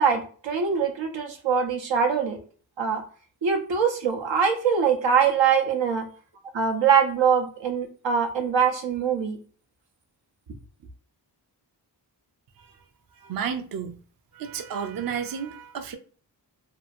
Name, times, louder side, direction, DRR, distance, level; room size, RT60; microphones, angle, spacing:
voice 1, 0.0-2.4 2.8-3.0 3.4-6.1 6.5-9.4, right 6 dB, 90° right, 0.7 m, -23 dB
voice 2, 13.2-14.0 14.3-16.0, right 7 dB, 50° right, 0.5 m, -32 dB
2.8 x 2.4 x 2.6 m
cardioid pair, 55°, 43 cm